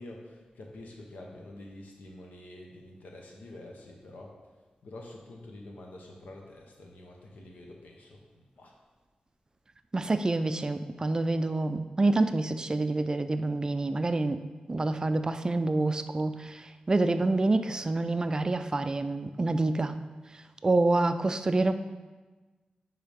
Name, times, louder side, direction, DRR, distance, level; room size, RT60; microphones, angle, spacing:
voice 1, 0.0-4.3 4.8-8.7, left 1 dB, 80° left, 0 dB, 0.9 m, -47 dB
voice 2, 9.9-14.4 14.7-20.0 20.6-21.7, right 2 dB, 25° right, 10 dB, 0.3 m, -27 dB
10.0 x 3.9 x 3.5 m, 1.3 s
wide cardioid pair, 130°, 3 cm